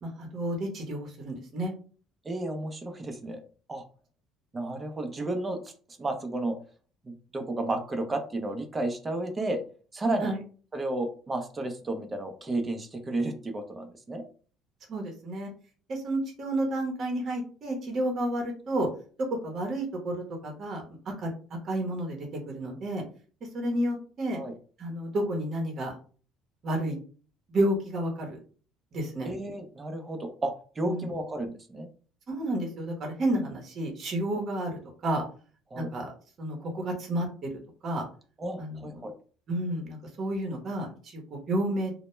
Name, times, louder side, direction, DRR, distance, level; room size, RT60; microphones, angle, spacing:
voice 1, 0.0-1.7 10.2-10.4 14.9-15.5 15.9-18.9 19.4-20.8 21.2-21.3 21.6-23.0 23.5-24.4 24.8-25.9 26.6-27.0 27.5-28.4 28.9-29.3 30.8-31.1 32.3-35.2 35.8-36.1 36.4-37.5 37.8-38.0 38.6-39.0 39.5-41.9, right 1 dB, 45° right, 1 dB, 0.8 m, -31 dB
voice 2, 2.2-3.4 3.7-3.8 4.5-5.6 6.0-6.6 7.1-9.6 9.9-10.3 10.7-14.2 24.3-24.5 29.2-31.9 35.7-35.9 38.4-39.1, right 2 dB, 20° right, 6 dB, 0.5 m, -32 dB
2.1 x 2.1 x 3.0 m, 0.40 s
cardioid pair, 120°, 0 cm